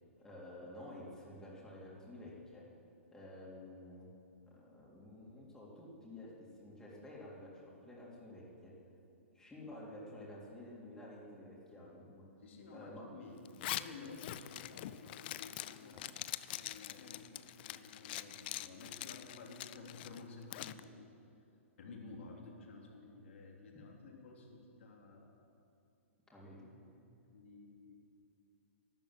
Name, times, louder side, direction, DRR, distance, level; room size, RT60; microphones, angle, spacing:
voice 1, 0.2-2.6 3.1-4.1 4.5-6.3 6.6-8.7 9.3-12.2 12.7-13.0 15.9-16.2 26.3-26.8, left 1 dB, 10° left, -6 dB, 3.7 m, -51 dB
voice 2, 12.4-16.0 16.5-21.1 21.8-25.5 26.4-28.0, left 3 dB, 60° left, 0 dB, 3.2 m, -53 dB
Zipper (clothing), 13.4-20.8, left 14 dB, 45° left, 0.5 m, -44 dB
13.0 x 12.5 x 7.7 m, 2.6 s
figure-of-eight pair, 120°, 7 cm